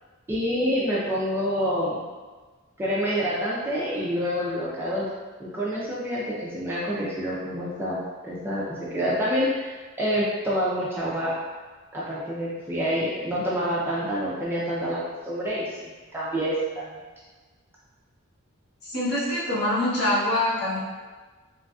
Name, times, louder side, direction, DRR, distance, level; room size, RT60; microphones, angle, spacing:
voice 1, 0.3-2.0 2.8-5.1 5.4-11.3 11.9-17.0, equal, 10° right, -7 dB, 0.3 m, -27 dB
voice 2, 18.8-20.8, left 1 dB, 50° left, -7 dB, 0.8 m, -24 dB
3.1 x 2.4 x 2.3 m, 1.3 s
head